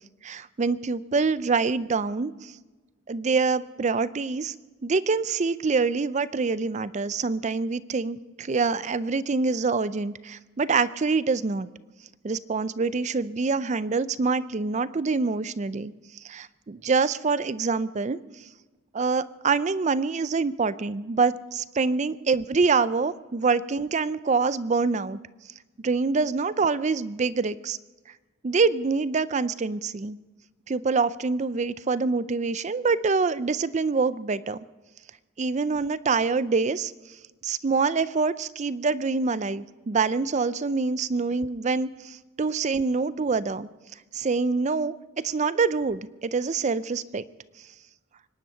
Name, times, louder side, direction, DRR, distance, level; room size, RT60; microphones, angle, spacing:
voice 1, 0.2-2.5 3.1-4.5 4.8-11.7 12.2-18.5 18.9-25.2 25.8-27.8 28.4-30.2 30.7-34.7 35.4-36.9 37.4-43.7 44.1-47.2, right 4 dB, 30° right, 16 dB, 0.4 m, -25 dB
24.5 x 10.5 x 5.6 m, 1.2 s
head